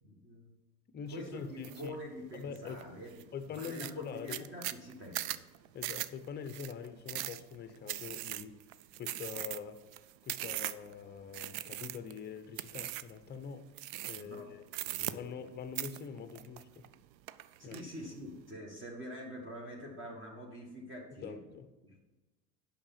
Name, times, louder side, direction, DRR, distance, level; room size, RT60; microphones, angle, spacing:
voice 1, 0.0-0.5 1.1-3.2 3.5-5.4 14.2-14.5 14.8-15.2 17.6-21.4 21.8-22.0, equal, 25° right, 1.7 m, -46 dB
voice 2, 0.9-2.0 2.3-2.9 3.3-4.5 5.7-8.6 9.0-9.8 10.2-13.7 14.1-14.6 15.1-16.9 17.6-17.8 21.2-21.7, left 6 dB, 20° left, 0.7 m, -44 dB
sound 1, 1.6-1.9 2.3-2.8 3.2-3.3 3.5-10.9 11.3-12.2 12.6-13.2 13.8-14.4 14.7-15.5 15.8-16.9 17.3-17.8, right 15 dB, 55° right, 0.5 m, -39 dB
8.6 x 5.9 x 5.7 m
hypercardioid pair, 85°, 49 cm